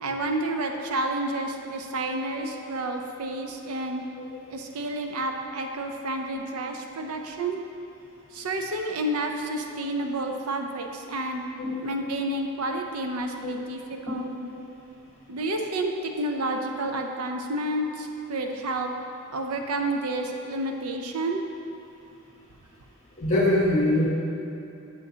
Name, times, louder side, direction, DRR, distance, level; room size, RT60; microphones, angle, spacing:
voice 1, 0.0-4.0 4.5-7.6 8.3-11.4 11.8-14.3 15.3-18.9 19.3-21.4, right 1 dB, 85° right, 4 dB, 0.6 m, -30 dB
voice 2, 23.2-24.1, left 1 dB, 30° left, -6 dB, 1.1 m, -23 dB
7.3 x 7.2 x 2.8 m, 3.0 s
head